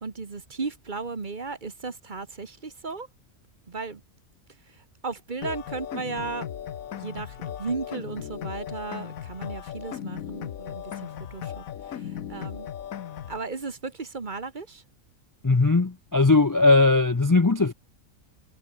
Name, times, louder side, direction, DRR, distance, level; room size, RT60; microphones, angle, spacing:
voice 1, 0.0-3.1 3.7-4.0 4.7-6.5 7.0-12.7 13.3-14.8, right 4 dB, 35° right, 1.5 m, -35 dB
sound 1, 5.4-13.4, left 10 dB, 85° left, 1.4 m, -37 dB
voice 2, 15.4-17.7, left 3 dB, 30° left, 0.4 m, -19 dB
omnidirectional pair, 1.4 m